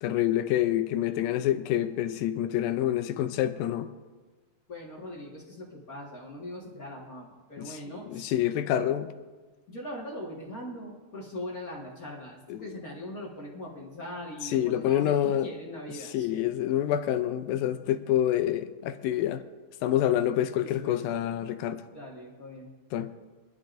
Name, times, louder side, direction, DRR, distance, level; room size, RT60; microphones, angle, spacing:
voice 1, 0.0-3.9 7.6-7.8 8.1-9.1 12.5-12.8 14.4-15.5 15.9-19.4 19.8-21.8 22.9-23.1, left 11 dB, 80° left, 2.2 m, -27 dB
voice 2, 4.7-8.3 9.7-16.5 20.6-21.0 21.9-22.7, left 1 dB, 55° left, 0.9 m, -41 dB
23.0 x 11.5 x 2.6 m
omnidirectional pair, 4.4 m